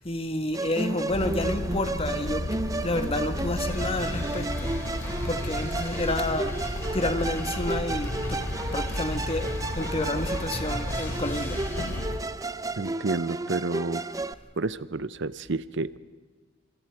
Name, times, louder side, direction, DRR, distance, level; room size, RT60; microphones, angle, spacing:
voice 1, 0.0-2.5 2.8-4.8 5.2-8.4 8.7-12.0, left 1 dB, 30° left, 8 dB, 1.8 m, -30 dB
Musical instrument, 0.5-14.3, right 2 dB, 15° right, 0.7 m, -33 dB
sound 1, 1.1-12.2, left 1 dB, 60° left, 1.4 m, -33 dB
sound 2, 3.7-12.0, left 1 dB, 15° left, 5.7 m, -39 dB
voice 2, 12.8-14.0 14.6-16.0, right 3 dB, 60° right, 16 dB, 0.7 m, -30 dB
27.0 x 26.5 x 4.9 m, 1.4 s
head